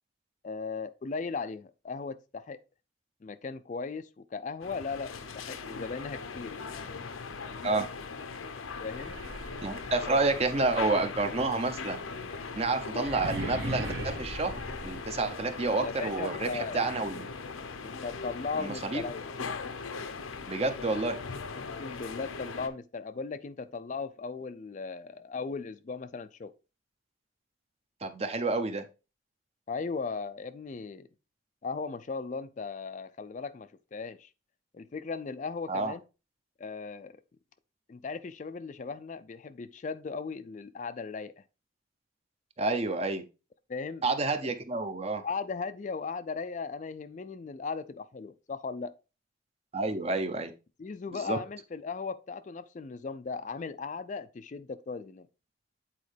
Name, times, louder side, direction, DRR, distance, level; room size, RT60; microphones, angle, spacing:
voice 1, 0.4-2.6 3.2-5.1 5.4-6.6 8.8-9.2 15.8-16.9 17.8-19.3 21.6-26.5 29.7-31.1 31.6-34.3 34.7-36.0 36.6-37.1 37.9-41.3 43.7-44.1 45.2-48.9 50.8-55.3, left 4 dB, 35° left, 0.3 m, -37 dB
sound 1, 4.6-22.7, left 4 dB, 90° left, 0.7 m, -39 dB
sound 2, 8.8-15.7, right 1 dB, 65° right, 1.4 m, -40 dB
voice 2, 9.6-12.0 12.6-14.5 14.8-17.3 18.6-19.0 20.5-21.2 28.0-28.8 35.7-35.9 42.6-43.2 44.0-45.2 49.7-50.5 51.1-51.4, right 3 dB, 30° right, 0.6 m, -29 dB
8.4 x 4.4 x 3.3 m
head